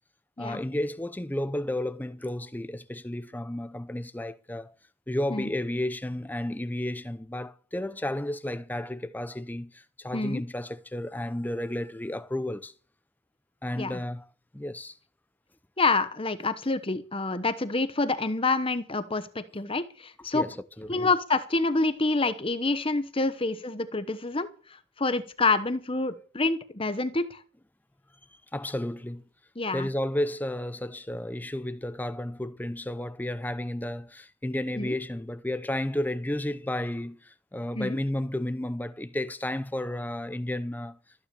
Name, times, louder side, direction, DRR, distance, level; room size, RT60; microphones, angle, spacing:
voice 1, 0.4-4.7 5.1-12.7 13.6-14.3 14.5-15.0 20.3-21.1 28.5-29.2 29.7-41.0, left 1 dB, 10° left, 0.6 m, -32 dB
voice 2, 15.8-20.4 20.9-24.5 25.0-27.4 29.6-29.9 34.7-34.9 37.7-38.0, left 3 dB, 25° left, 1.0 m, -27 dB
13.5 x 10.5 x 6.9 m
head